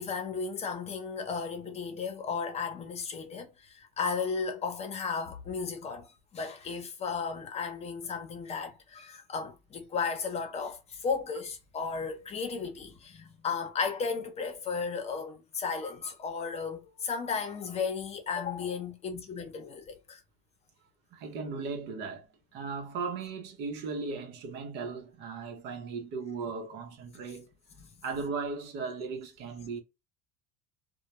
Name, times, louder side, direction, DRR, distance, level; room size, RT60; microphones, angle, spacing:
voice 1, 0.0-20.2 27.8-27.9, left 5 dB, 35° left, 0.8 m, -34 dB
voice 2, 21.1-27.5 28.0-29.8, right 4 dB, 65° right, 0.8 m, -37 dB
2.2 x 2.1 x 2.9 m
supercardioid pair, 110°, 20 cm